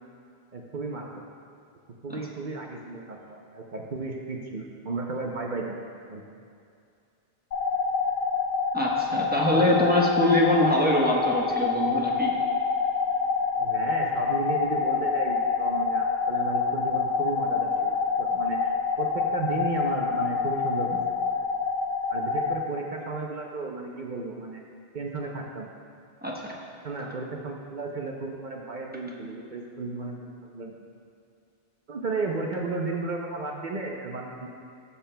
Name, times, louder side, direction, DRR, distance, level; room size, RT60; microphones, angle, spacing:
voice 1, 0.5-1.2 2.0-5.8 6.1-6.2 9.5-9.7 13.6-21.0 22.1-24.6 24.9-25.7 26.8-30.8 31.9-34.5, right 3 dB, 50° right, 0 dB, 0.8 m, -34 dB
sound 1, 7.5-22.5, left 5 dB, 40° left, 1.3 m, -27 dB
voice 2, 8.7-12.3 26.2-26.6, left 1 dB, 10° right, -3 dB, 0.9 m, -23 dB
15.5 x 6.9 x 2.2 m, 2.4 s
omnidirectional pair, 1.1 m